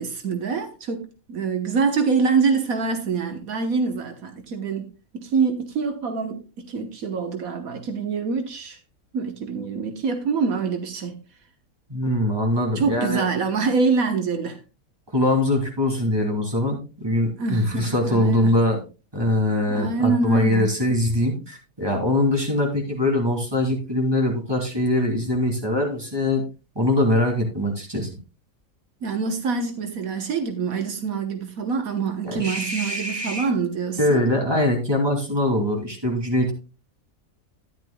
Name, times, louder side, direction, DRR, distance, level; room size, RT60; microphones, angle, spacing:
voice 1, 0.0-4.9 5.1-8.8 9.1-11.2 12.7-14.6 17.4-18.6 19.7-20.7 29.0-34.2, right 5 dB, 80° right, 1.6 m, -25 dB
voice 2, 11.9-13.2 15.1-18.8 19.1-26.4 26.7-28.1 32.2-33.5 34.0-36.5, left 1 dB, 15° right, 3.0 m, -22 dB
13.0 x 10.5 x 2.3 m
omnidirectional pair, 1.5 m